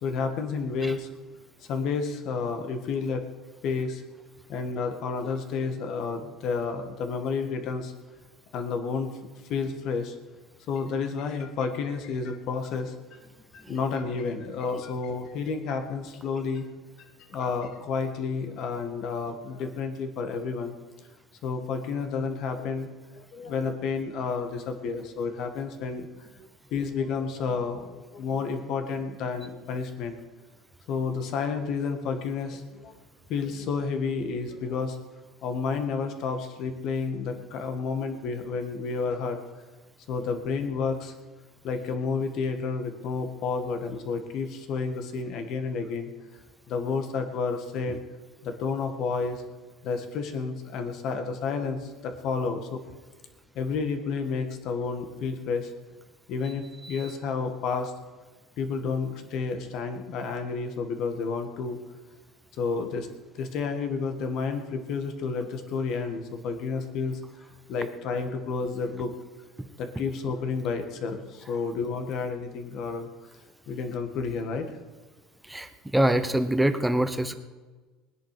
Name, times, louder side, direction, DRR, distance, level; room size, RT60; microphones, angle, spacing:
voice 1, 0.0-1.1 1.7-3.2 3.6-4.0 4.5-7.9 8.5-9.1 9.5-10.2 10.7-13.2 13.5-16.7 17.3-20.7 21.4-22.9 23.1-26.1 26.7-30.2 30.9-32.9 33.3-35.0 35.4-39.4 40.1-41.1 41.6-46.1 46.7-48.0 48.4-49.4 49.8-52.8 53.6-55.7 56.3-57.9 58.6-61.8 62.6-63.1 63.3-67.2 67.7-69.1 69.8-73.1 73.7-74.7, left 5 dB, 55° left, 6 dB, 1.8 m, -30 dB
voice 2, 75.4-77.3, right 1 dB, 5° right, 9 dB, 0.9 m, -26 dB
20.0 x 10.5 x 5.0 m, 1.3 s
cardioid pair, 140°, 0 cm